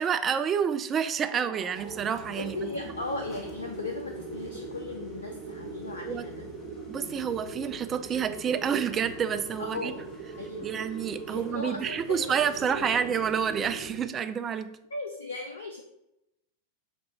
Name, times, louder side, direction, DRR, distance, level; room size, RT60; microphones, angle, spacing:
voice 1, 0.0-2.6 6.1-6.2 6.9-9.9 10.6-14.7, right 7 dB, 25° right, 9 dB, 0.3 m, -29 dB
sound 1, 1.2-14.5, right 5 dB, 45° right, 0.9 m, -42 dB
sound 2, 1.7-14.0, left 3 dB, 25° left, 0.9 m, -48 dB
voice 2, 2.4-6.5 9.6-10.1 10.4-10.8 11.3-13.2 14.9-15.8, left 3 dB, 75° left, 4 dB, 0.4 m, -37 dB
5.0 x 2.2 x 4.1 m, 0.86 s
figure-of-eight pair, 90°, 0 cm